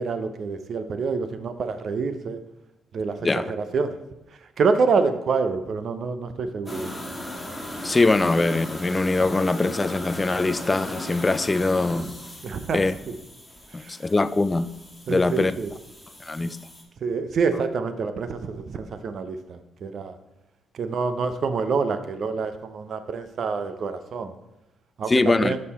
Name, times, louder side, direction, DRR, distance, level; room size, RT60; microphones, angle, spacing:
voice 1, 0.0-2.4 2.9-3.9 4.3-6.9 12.4-12.8 13.1-13.2 13.8-14.0 15.1-15.7 17.0-20.2 20.7-24.3 25.0-25.6, right 4 dB, 55° right, 0.6 m, -27 dB
voice 2, 3.2-3.5 7.8-12.1 12.7-12.9 13.7-14.7 15.1-15.5 16.2-16.6 25.1-25.5, left 3 dB, 20° left, 0.3 m, -22 dB
sound 1, 6.7-16.8, left 1 dB, 5° left, 1.5 m, -37 dB
6.5 x 5.5 x 4.2 m
cardioid pair, 90°, 0 cm